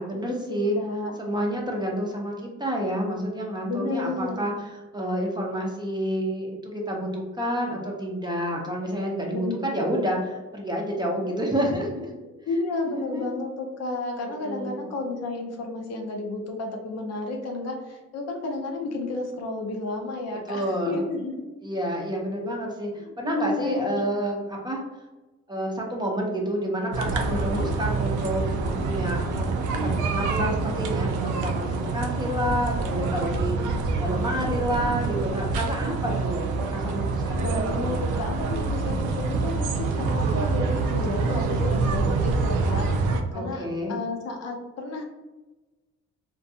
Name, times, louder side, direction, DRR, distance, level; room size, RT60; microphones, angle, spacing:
voice 1, 0.0-0.8 1.2-12.2 12.9-13.3 14.2-14.8 20.5-21.1 21.6-24.8 25.5-29.5 29.8-38.0 43.3-44.0, equal, 15° right, -1 dB, 0.6 m, -29 dB
voice 2, 0.8-1.2 3.6-4.5 9.3-9.9 12.2-21.4 22.4-22.6 22.9-24.0 27.3-27.7 37.4-45.0, left 2 dB, 60° left, 2 dB, 0.6 m, -32 dB
sound 1, 26.9-43.2, right 4 dB, 85° right, 0.4 m, -26 dB
2.6 x 2.2 x 2.6 m, 1.1 s
cardioid pair, 90°, 30 cm